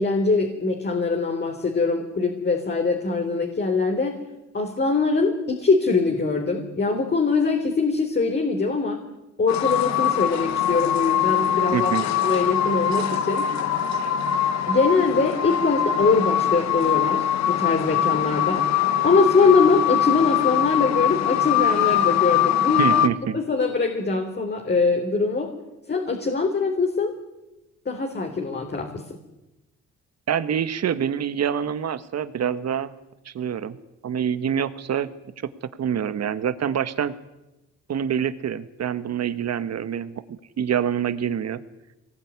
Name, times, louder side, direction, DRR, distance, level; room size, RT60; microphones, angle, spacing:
voice 1, 0.0-4.2 4.5-9.0 9.4-11.9 12.2-13.5 14.7-18.7 19.0-23.0 23.3-25.5 25.9-27.2 27.9-29.0, left 4 dB, 35° left, 2 dB, 3.9 m, -22 dB
sound 1, 9.5-23.1, left 10 dB, 65° left, 1.4 m, -22 dB
voice 2, 11.7-12.1 22.8-23.4 30.3-32.9 33.3-33.8 34.0-35.1 35.8-37.1 37.9-41.6, right 8 dB, 60° right, 13 dB, 1.7 m, -26 dB
23.5 x 19.5 x 9.8 m, 0.99 s
cardioid pair, 90°, 30 cm